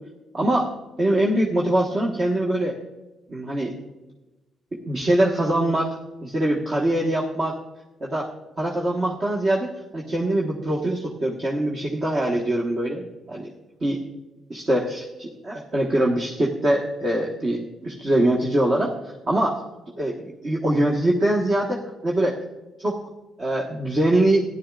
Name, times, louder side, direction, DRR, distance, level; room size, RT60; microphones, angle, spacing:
voice 1, 0.3-0.7 1.0-2.8 3.3-3.7 4.9-7.6 8.0-8.3 8.6-13.5 13.8-14.0 14.5-18.9 19.3-19.6 20.0-22.4 22.8-23.0 23.4-24.4, right 1 dB, 40° right, -3 dB, 1.4 m, -23 dB
14.5 x 11.0 x 2.5 m, 1.1 s
cardioid pair, 90°, 0 cm